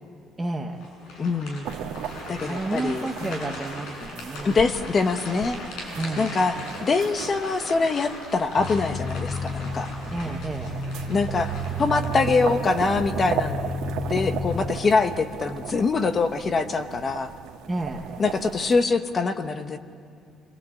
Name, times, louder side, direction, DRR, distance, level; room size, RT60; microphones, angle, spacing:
voice 1, 0.4-0.8 2.4-4.6 6.0-6.3 10.1-10.8 17.7-18.1, right 2 dB, 10° right, 1 dB, 1.0 m, -31 dB
sound 1, 0.8-13.4 13.9-14.0 14.6-15.1, left 1 dB, 80° left, 7.7 m, -40 dB
voice 2, 1.2-1.8 2.3-3.5 4.4-5.6 6.2-6.6 6.8-9.9 11.1-11.5 11.8-13.6 14.1-17.3 18.2-19.8, left 4 dB, 25° left, 9 dB, 1.0 m, -24 dB
sound 2, 1.6-18.9, right 10 dB, 85° right, 1.6 m, -37 dB
sound 3, 8.6-14.6, left 1 dB, 60° left, 7.5 m, -31 dB
26.5 x 23.0 x 8.4 m, 2.2 s
cardioid pair, 175°, 0 cm